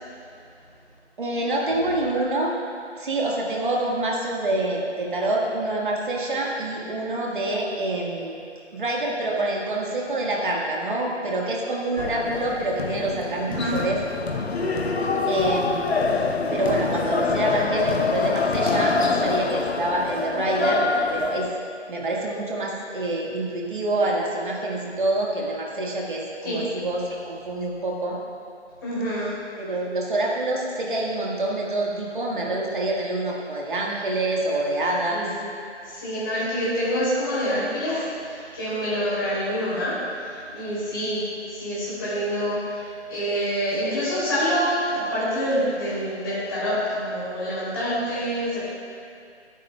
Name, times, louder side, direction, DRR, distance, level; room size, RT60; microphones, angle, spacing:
voice 1, 1.2-2.6 3.0-8.4 8.7-14.0 15.3-16.0 16.5-21.5 21.9-28.2 29.6-35.3, right 2 dB, 45° right, -3 dB, 1.6 m, -26 dB
sound 1, 12.0-21.5, left 4 dB, 60° left, 0.8 m, -25 dB
voice 2, 28.8-29.3 35.1-35.4 35.8-39.9 40.2-48.6, equal, 20° left, -10 dB, 2.9 m, -26 dB
20.5 x 9.1 x 2.2 m, 2.4 s
hypercardioid pair, 175°, 35 cm